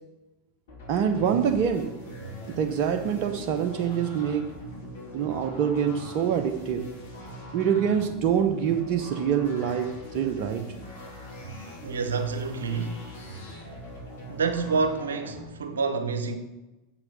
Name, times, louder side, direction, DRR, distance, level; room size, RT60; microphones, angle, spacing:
sound 1, 0.7-15.4, equal, 70° left, 2.9 m, -41 dB
voice 1, 0.9-1.9 2.5-4.5 5.1-6.9 7.5-10.6, right 8 dB, 50° right, 0.7 m, -25 dB
voice 2, 11.8-13.0 14.3-16.4, right 4 dB, 80° right, 0.9 m, -28 dB
7.8 x 6.0 x 6.1 m
hypercardioid pair, 85°, 0 cm